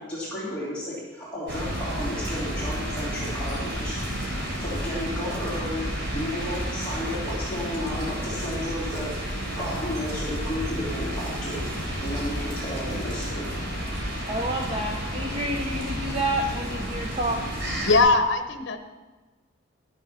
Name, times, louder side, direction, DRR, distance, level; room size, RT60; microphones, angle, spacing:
voice 1, 0.0-4.0 4.6-5.9 6.1-9.1 9.5-11.6 12.0-13.5, left 1 dB, 5° left, -10 dB, 2.9 m, -33 dB
sound 1, 1.5-18.0, equal, 60° right, 3.8 m, -31 dB
voice 2, 14.3-17.7, right 1 dB, 30° right, 2 dB, 0.7 m, -29 dB
voice 3, 17.9-18.8, left 3 dB, 60° left, 8 dB, 0.9 m, -20 dB
12.0 x 7.3 x 5.8 m, 1.2 s
head